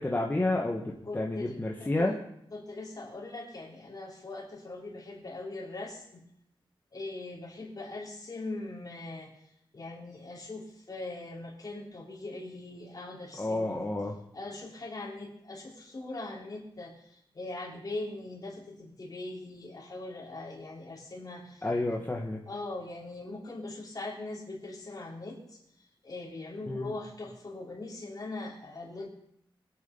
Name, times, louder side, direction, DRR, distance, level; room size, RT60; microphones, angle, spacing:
voice 1, 0.0-2.1 13.4-14.1 21.6-22.4 26.7-26.9, left 2 dB, 20° left, -1 dB, 1.5 m, -30 dB
voice 2, 1.1-2.2 2.5-6.2 6.9-9.3 9.7-13.9 14.3-22.0 22.5-25.6 26.0-29.1, left 2 dB, 45° left, -1 dB, 3.8 m, -41 dB
22.0 x 8.7 x 5.4 m, 0.74 s
wide cardioid pair, 125°, 9 cm